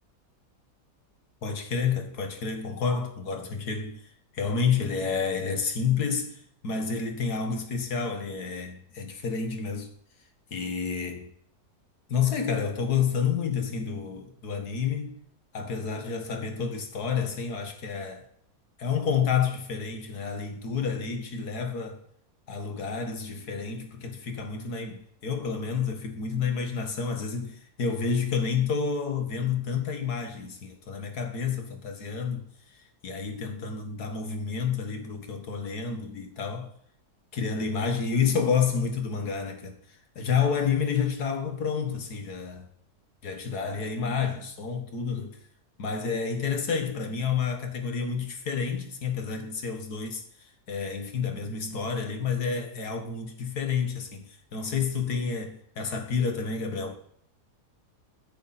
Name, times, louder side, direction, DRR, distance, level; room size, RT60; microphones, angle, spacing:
voice 1, 1.4-4.0 4.3-9.9 10.5-11.3 12.1-15.2 15.5-18.3 18.8-22.0 22.5-32.5 33.0-36.7 37.3-39.7 40.2-42.7 43.2-45.4 45.8-50.2 50.7-54.3 54.5-56.9, left 6 dB, 70° left, 2.3 m, -29 dB
16.5 x 10.0 x 4.3 m
omnidirectional pair, 1.7 m